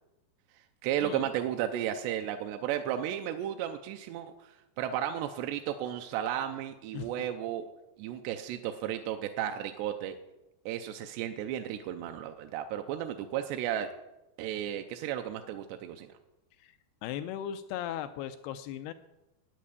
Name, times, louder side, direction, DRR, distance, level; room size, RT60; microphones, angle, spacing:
voice 1, 0.8-7.7 8.0-10.2 10.7-13.9 14.4-16.1, right 10 dB, 90° right, 6 dB, 2.8 m, -34 dB
voice 2, 17.0-18.9, left 10 dB, 80° left, 10 dB, 2.5 m, -37 dB
11.0 x 9.5 x 8.3 m, 0.98 s
omnidirectional pair, 4.8 m